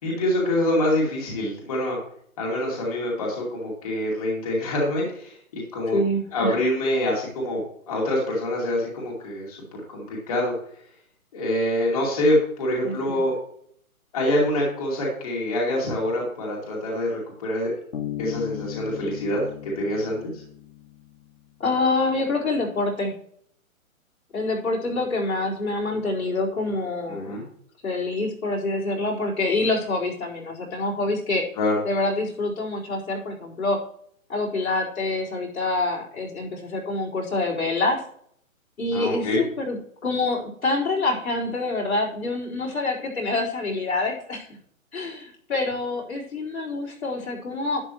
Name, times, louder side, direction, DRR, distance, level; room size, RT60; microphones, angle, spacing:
voice 1, 0.0-2.0 2.4-6.0 6.3-9.6 9.9-10.5 11.3-13.3 14.1-17.7 18.2-20.3 27.1-27.4 31.6-31.8 38.9-39.4, left 1 dB, 25° left, -4 dB, 2.5 m, -25 dB
voice 2, 5.9-6.6 12.8-13.2 21.6-23.1 24.3-27.4 27.8-31.4 31.8-33.8 34.3-38.0 38.8-44.5 44.9-47.8, left 2 dB, 75° left, -4 dB, 4.5 m, -26 dB
Bass guitar, 17.9-21.5, left 12 dB, 60° left, 2.2 m, -36 dB
11.5 x 9.5 x 3.1 m, 0.65 s
hypercardioid pair, 180°, 42 cm